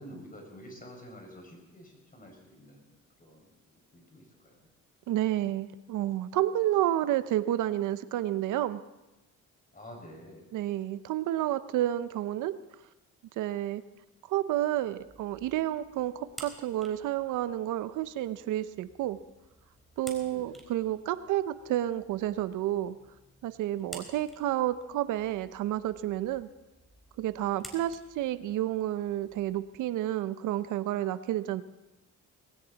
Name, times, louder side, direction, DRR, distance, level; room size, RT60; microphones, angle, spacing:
voice 1, 0.0-4.7 9.7-10.5 20.2-20.6 23.9-24.2, equal, 30° left, 2 dB, 5.5 m, -50 dB
voice 2, 5.1-8.8 10.5-12.6 13.4-13.8 14.3-19.2 20.0-23.0 23.4-26.5 27.2-31.6, right 13 dB, 85° right, 14 dB, 0.7 m, -30 dB
sound 1, 14.6-29.9, right 1 dB, ahead, 3.7 m, -53 dB
19.5 x 16.5 x 4.0 m, 1.0 s
cardioid pair, 90°, 30 cm